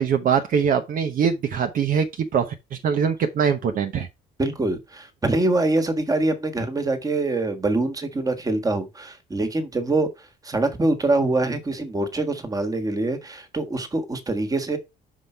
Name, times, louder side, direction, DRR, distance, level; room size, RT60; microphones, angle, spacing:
voice 1, 0.0-4.1, right 7 dB, 55° right, 0.9 m, -23 dB
voice 2, 4.4-10.1 10.4-14.8, right 2 dB, 20° right, 1.6 m, -24 dB
5.6 x 5.0 x 4.5 m
cardioid pair, 110°, 17 cm